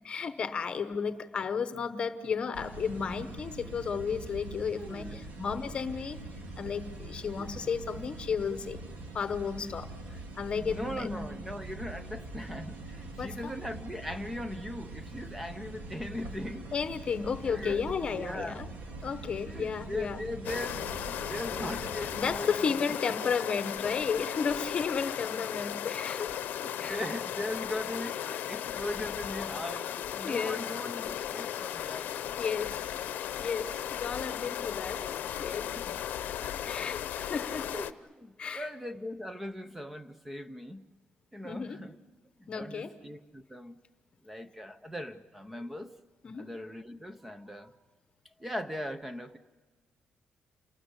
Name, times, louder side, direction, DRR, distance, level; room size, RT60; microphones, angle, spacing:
voice 1, 0.0-6.2 6.6-8.8 9.1-11.3 13.2-13.5 16.7-18.7 19.0-20.2 22.2-26.3 26.8-27.0 30.2-30.6 32.4-32.9 33.4-35.0 35.4-35.7 36.6-37.7 38.4-38.7 41.4-41.8 42.5-42.9 46.2-46.5, left 6 dB, 35° left, 10 dB, 1.0 m, -33 dB
sound 1, 2.5-22.4, right 2 dB, 65° right, 3.5 m, -43 dB
voice 2, 4.8-5.2 7.4-7.5 8.5-8.6 10.6-16.7 17.5-18.6 19.5-23.2 25.7-25.8 26.3-32.1 34.9-36.0 36.4-36.7 37.7-40.8 41.3-42.0 42.4-43.8 44.2-45.9 46.4-47.7 48.4-49.4, left 1 dB, 5° right, 10 dB, 0.8 m, -40 dB
sound 2, 20.4-37.9, left 10 dB, 70° left, 0.8 m, -36 dB
28.5 x 19.5 x 8.2 m, 1.3 s
cardioid pair, 180°, 3 cm